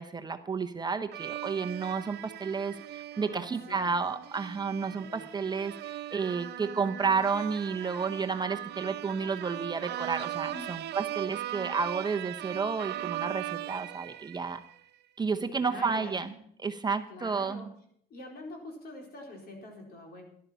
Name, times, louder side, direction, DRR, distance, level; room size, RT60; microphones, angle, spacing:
voice 1, 0.0-14.6 15.2-16.3 16.6-17.7, right 5 dB, 25° right, 7 dB, 0.8 m, -31 dB
sound 1, 1.1-14.8, right 13 dB, 75° right, 0.6 m, -39 dB
voice 2, 3.3-4.0 5.1-5.3 10.5-10.8 15.3-16.3 17.1-17.8 18.1-20.2, left 2 dB, 60° left, 1 dB, 4.2 m, -45 dB
12.5 x 11.5 x 5.7 m, 0.66 s
cardioid pair, 115°, 18 cm